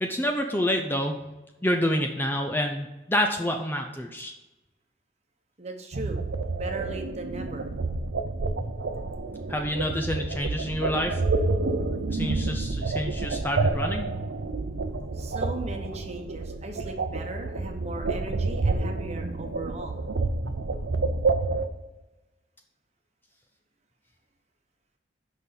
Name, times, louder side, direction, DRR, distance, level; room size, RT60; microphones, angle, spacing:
voice 1, 0.0-1.2 1.6-4.3 9.5-11.2 12.1-14.1, equal, 10° left, 3 dB, 0.5 m, -28 dB
voice 2, 5.6-6.2 6.5-7.7 15.1-20.0, right 2 dB, 35° right, 4 dB, 1.1 m, -37 dB
sound 1, 5.9-21.7, right 3 dB, 75° right, 0.7 m, -29 dB
6.1 x 5.5 x 6.8 m, 1.0 s
head